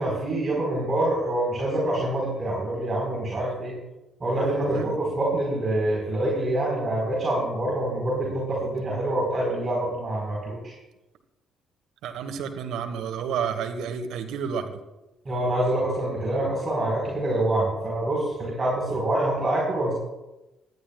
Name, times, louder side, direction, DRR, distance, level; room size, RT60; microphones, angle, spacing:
voice 1, 0.0-3.7 4.2-10.7 15.2-19.9, right 1 dB, 35° right, -4 dB, 4.4 m, -26 dB
voice 2, 12.0-14.8, right 7 dB, 60° right, 7 dB, 1.3 m, -30 dB
19.0 x 11.5 x 2.4 m, 1.0 s
figure-of-eight pair, 45°, 0 cm